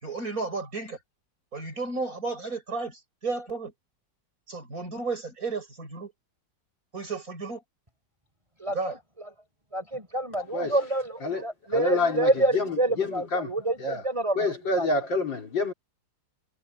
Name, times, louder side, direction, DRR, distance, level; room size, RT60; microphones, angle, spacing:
voice 1, 0.0-1.0 1.5-3.7 4.5-6.1 6.9-7.6 8.7-9.0, right 3 dB, 45° right, 7.2 m, -33 dB
voice 2, 8.6-9.0 9.7-14.9, right 2 dB, 15° right, 5.2 m, -28 dB
voice 3, 10.5-10.8 11.2-11.4 11.7-13.5 13.8-14.0 14.4-15.7, left 3 dB, 75° left, 4.5 m, -28 dB
omnidirectional pair, 2.0 m